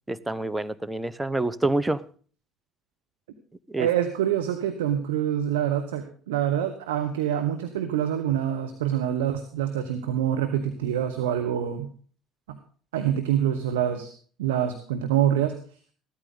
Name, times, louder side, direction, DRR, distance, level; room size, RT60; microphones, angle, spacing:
voice 1, 0.1-2.0 3.7-3.9, right 2 dB, 10° right, 14 dB, 0.9 m, -27 dB
voice 2, 3.8-11.9 12.5-12.6 12.9-14.1 14.4-15.6, right 10 dB, 80° right, 6 dB, 1.3 m, -26 dB
15.0 x 13.0 x 3.9 m, 0.43 s
hypercardioid pair, 65°, 0 cm